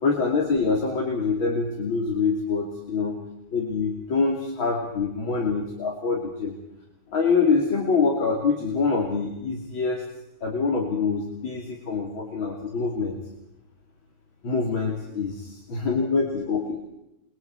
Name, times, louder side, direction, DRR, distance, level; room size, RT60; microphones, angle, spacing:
voice 1, 0.0-3.2 3.5-6.5 7.1-10.0 10.4-13.2 14.4-16.8, left 4 dB, 35° left, 0 dB, 3.1 m, -25 dB
29.0 x 22.5 x 4.6 m, 0.87 s
omnidirectional pair, 4.5 m